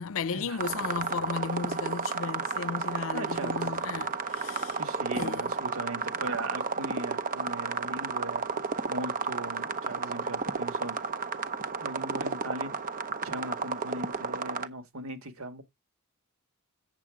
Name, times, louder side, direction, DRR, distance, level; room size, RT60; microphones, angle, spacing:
voice 1, 0.0-4.8 5.1-5.5, left 5 dB, 65° left, 0.6 m, -35 dB
sound 1, 0.6-14.7, right 4 dB, 40° right, 0.8 m, -32 dB
voice 2, 3.1-3.7 4.8-8.4 8.9-11.0 11.8-12.7 13.2-15.6, right 1 dB, 65° right, 2.0 m, -38 dB
8.9 x 7.4 x 3.7 m
head